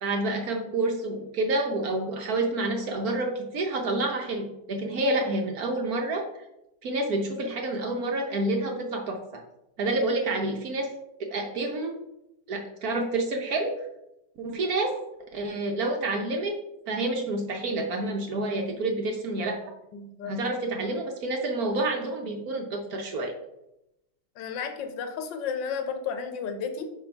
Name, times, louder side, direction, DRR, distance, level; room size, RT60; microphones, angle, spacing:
voice 1, 0.0-6.2 6.8-9.4 9.8-10.9 11.2-12.0 12.5-13.8 14.4-15.0 15.3-16.5 16.9-19.6 20.3-23.3, right 2 dB, 60° right, 2 dB, 1.1 m, -28 dB
voice 2, 19.9-20.4 24.4-26.9, left 6 dB, 70° left, 6 dB, 1.4 m, -33 dB
5.5 x 5.1 x 4.4 m, 0.87 s
omnidirectional pair, 2.1 m